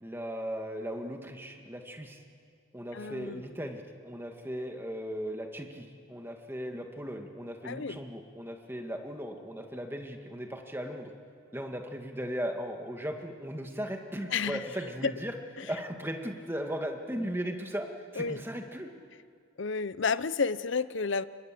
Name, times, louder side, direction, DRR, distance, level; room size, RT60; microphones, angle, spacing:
voice 1, 0.0-2.2 2.7-11.1 11.5-15.3 15.6-17.9 18.1-18.9, equal, 10° right, 3 dB, 1.9 m, -37 dB
voice 2, 2.9-3.6 7.6-8.0 14.3-14.7 15.0-15.1 18.2-18.4 19.6-21.2, left 5 dB, 65° left, 15 dB, 0.7 m, -31 dB
28.5 x 23.5 x 7.7 m, 2.2 s
head